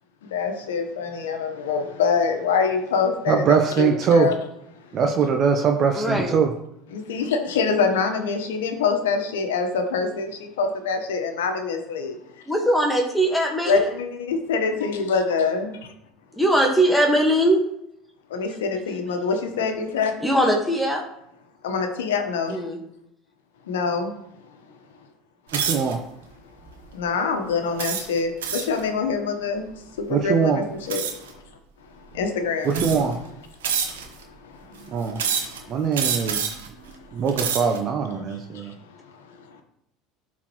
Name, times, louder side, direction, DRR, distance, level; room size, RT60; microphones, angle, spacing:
voice 1, 0.2-3.4 3.8-4.3 6.9-12.1 13.6-15.8 18.3-20.1 21.6-22.6 23.7-24.1 26.9-31.4 32.1-32.8 34.0-35.7 36.1-36.4 38.3-39.6, left 5 dB, 80° left, 6 dB, 1.1 m, -25 dB
voice 2, 3.3-4.3 4.9-6.5 25.5-26.0 30.1-30.6 32.6-33.2 34.9-35.2 35.7-36.5 37.1-38.7, right 6 dB, 45° right, 5 dB, 0.8 m, -22 dB
voice 3, 5.9-6.4 12.5-13.8 16.4-17.6 20.2-21.0 22.5-22.8, right 1 dB, 5° left, 1 dB, 1.5 m, -20 dB
sound 1, 25.5-25.9 26.6-26.8 27.8-28.8 30.9-31.3 32.1-32.2 32.7-33.2 33.6-34.2 35.2-35.6 35.9-36.7 37.2-37.8, right 7 dB, 85° right, 1.0 m, -27 dB
11.5 x 4.1 x 3.1 m, 0.78 s
hypercardioid pair, 75°, 0 cm